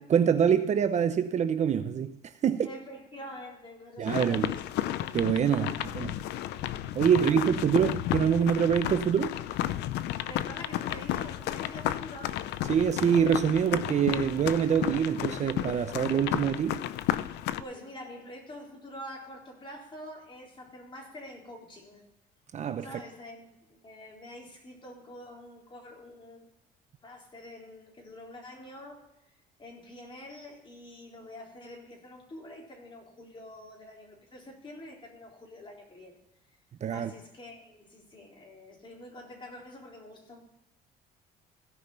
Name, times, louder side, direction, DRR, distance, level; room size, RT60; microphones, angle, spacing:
voice 1, 0.0-2.7 4.0-4.5 5.1-6.2 6.9-9.4 12.7-16.8 22.5-22.9 36.8-37.1, right 8 dB, 45° right, 0.7 m, -25 dB
voice 2, 2.6-4.6 5.6-5.8 7.1-7.4 10.2-12.4 17.6-22.0 22.8-26.5 27.0-29.3 29.6-36.2 36.9-40.4, left 1 dB, 30° left, 4.0 m, -46 dB
sound 1, 4.1-17.6, left 13 dB, 85° left, 0.6 m, -33 dB
16.5 x 5.9 x 5.5 m
cardioid pair, 110°, 17 cm